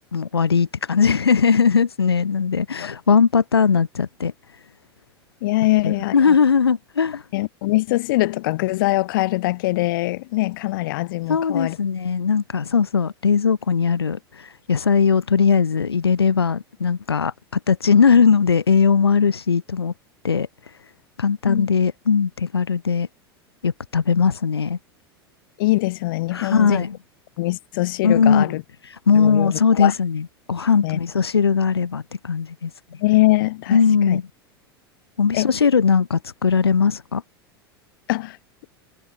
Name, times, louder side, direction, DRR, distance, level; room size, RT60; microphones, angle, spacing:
voice 1, 0.1-4.3 5.8-7.2 11.3-19.9 20.2-20.5 21.2-23.1 23.6-24.8 26.3-27.0 28.0-28.6 29.1-33.0 33.7-34.3 35.2-37.2, left 6 dB, 80° left, 7.4 m, -19 dB
voice 2, 5.4-6.3 7.3-11.8 21.4-21.7 25.6-26.9 27.4-28.6 29.1-29.9 30.8-31.0 33.0-33.8 34.1-34.2 35.3-35.5 38.1-38.4, left 19 dB, 60° left, 4.8 m, -22 dB
figure-of-eight pair, 85°, 13 cm